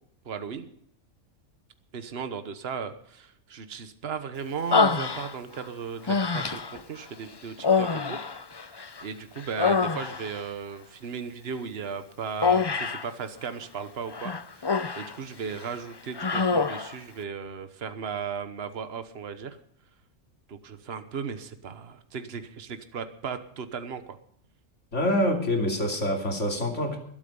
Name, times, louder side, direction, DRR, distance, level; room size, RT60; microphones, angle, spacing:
voice 1, 0.2-0.7 1.9-8.2 8.6-14.7 15.0-19.6 20.5-24.2, right 6 dB, 55° right, 10 dB, 1.3 m, -36 dB
Human voice, 4.7-5.6 6.1-6.8 7.6-9.0 9.4-10.4 12.4-13.1 14.1-15.2 15.5-15.7 16.2-16.9, left 5 dB, 35° left, 0.4 m, -25 dB
voice 2, 24.9-27.0, left 1 dB, 70° left, 2 dB, 3.1 m, -26 dB
21.0 x 8.8 x 5.4 m, 0.66 s
omnidirectional pair, 1.3 m